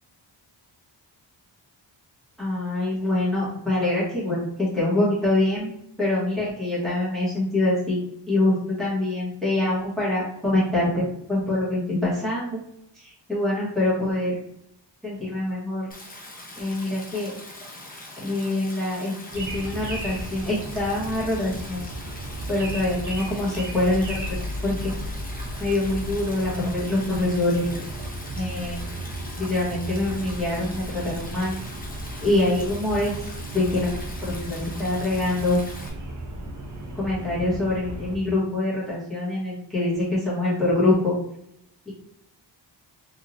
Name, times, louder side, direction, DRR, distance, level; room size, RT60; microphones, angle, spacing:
voice 1, 2.4-5.7 6.0-8.0 8.3-12.6 12.9-14.4 15.0-15.9 16.5-17.3 18.2-21.8 22.5-24.4 24.6-24.9 25.6-27.8 28.4-28.8 29.4-31.5 32.2-33.2 33.5-33.9 34.2-35.6 36.9-41.1, left 2 dB, ahead, -9 dB, 1.1 m, -25 dB
Stream, 15.9-35.9, left 1 dB, 20° left, 0.6 m, -42 dB
sound 1, 19.3-38.2, right 1 dB, 40° right, 0.6 m, -35 dB
3.0 x 2.7 x 2.5 m, 0.74 s
wide cardioid pair, 125°, 45 cm